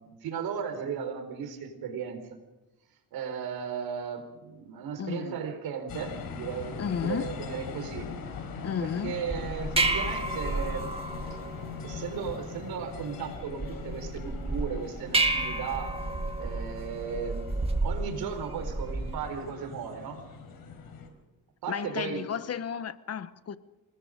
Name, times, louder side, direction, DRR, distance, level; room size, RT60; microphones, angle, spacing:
voice 1, 0.0-2.2 3.1-8.1 8.8-10.9 11.8-16.0 16.4-20.2 21.6-22.3, right 7 dB, 85° right, 4.4 m, -36 dB
voice 2, 5.0-5.4 6.8-7.3 8.6-9.1 11.6-11.7 21.7-23.6, left 7 dB, 45° left, 1.1 m, -33 dB
sound 1, 5.9-21.1, left 5 dB, 75° left, 4.8 m, -41 dB
sound 2, 9.3-19.3, right 2 dB, 15° right, 1.9 m, -32 dB
27.5 x 20.0 x 5.2 m
cardioid pair, 115°, 36 cm